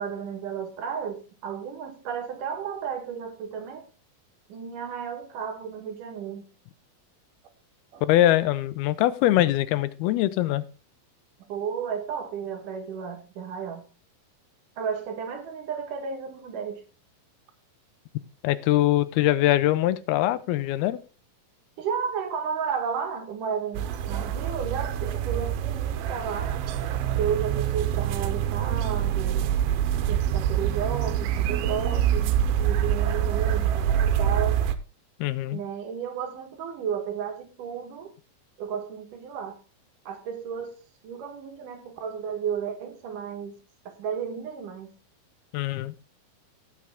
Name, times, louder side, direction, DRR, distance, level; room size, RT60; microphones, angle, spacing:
voice 1, 0.0-3.9 4.5-6.5 7.9-8.0 11.5-13.8 14.8-16.8 21.8-26.6 27.2-29.5 30.1-34.6 35.5-38.1 38.6-39.6 40.1-40.7 41.0-43.6 43.9-44.9, right 7 dB, 65° right, 2.8 m, -33 dB
voice 2, 8.0-10.7 18.4-21.0 35.2-35.6 45.5-45.9, left 14 dB, 85° left, 2.6 m, -23 dB
sound 1, 23.7-34.7, right 10 dB, 80° right, 2.6 m, -25 dB
17.5 x 6.3 x 3.5 m
omnidirectional pair, 4.3 m